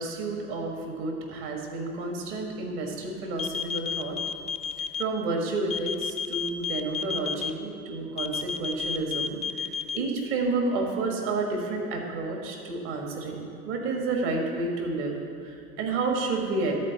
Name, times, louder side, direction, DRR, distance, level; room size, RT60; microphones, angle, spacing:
voice 1, 0.0-4.2 5.0-15.2 15.4-16.8, right 3 dB, 60° right, 1 dB, 1.7 m, -30 dB
sound 1, 3.4-5.0 5.7-7.5 8.2-10.0, left 6 dB, 15° left, 0.4 m, -30 dB
11.5 x 4.5 x 6.9 m, 2.5 s
figure-of-eight pair, 70°, 41 cm